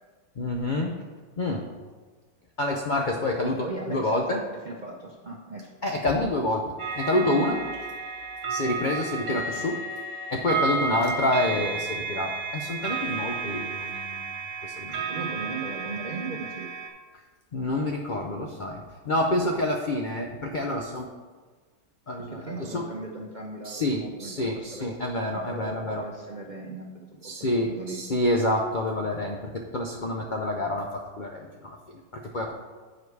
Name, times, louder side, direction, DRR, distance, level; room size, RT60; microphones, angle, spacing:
voice 1, 0.4-1.0 1.4-1.6 2.6-4.4 5.8-6.6 7.0-7.6 8.5-9.8 10.3-14.3 14.6-15.0 17.5-21.1 22.1-22.9 23.6-26.0 27.2-32.5, left 1 dB, 90° left, 1 dB, 0.4 m, -28 dB
voice 2, 3.4-4.2 4.6-5.7 6.1-6.3 7.1-7.4 15.1-16.7 22.3-24.9 25.3-26.9 27.2-28.0, right 3 dB, 55° right, -1 dB, 0.5 m, -38 dB
sound 1, 6.8-16.9, right 4 dB, 85° right, 1.8 m, -32 dB
8.5 x 5.2 x 4.7 m, 1.4 s
omnidirectional pair, 1.8 m